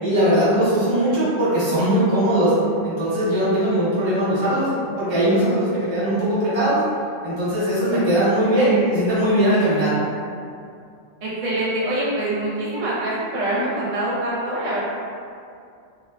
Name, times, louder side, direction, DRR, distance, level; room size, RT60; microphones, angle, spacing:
voice 1, 0.0-2.5 2.8-6.8 7.2-9.9, right 1 dB, 25° right, -11 dB, 0.7 m, -20 dB
voice 2, 11.2-14.8, right 1 dB, 80° right, -8 dB, 1.1 m, -25 dB
2.7 x 2.3 x 2.2 m, 2.4 s
omnidirectional pair, 1.3 m